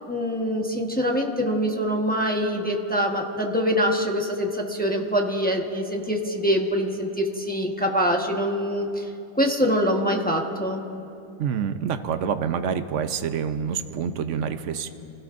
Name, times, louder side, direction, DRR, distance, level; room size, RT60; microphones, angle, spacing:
voice 1, 0.1-9.1 9.3-10.8, equal, 5° left, 0 dB, 0.8 m, -24 dB
voice 2, 11.4-14.9, right 7 dB, 70° right, 9 dB, 0.7 m, -27 dB
28.5 x 16.5 x 2.6 m, 2.6 s
omnidirectional pair, 2.0 m